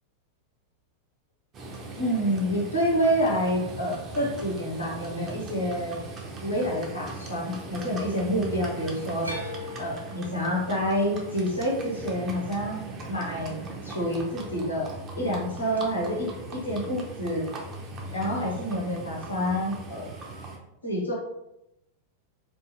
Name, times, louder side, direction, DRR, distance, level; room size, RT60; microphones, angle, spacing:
Livestock farm animals working animals, 1.5-20.6, right 2 dB, 30° right, 0.5 m, -39 dB
voice 1, 2.0-6.0 6.4-9.3 9.8-14.9 15.1-17.4 18.1-20.1 20.8-21.1, equal, 80° left, -4 dB, 0.9 m, -28 dB
sound 1, 9.2-13.4 13.7-14.4 15.7-15.8, left 2 dB, 80° right, 0.5 m, -41 dB
2.5 x 2.3 x 2.9 m, 0.88 s
figure-of-eight pair, 90°, 0 cm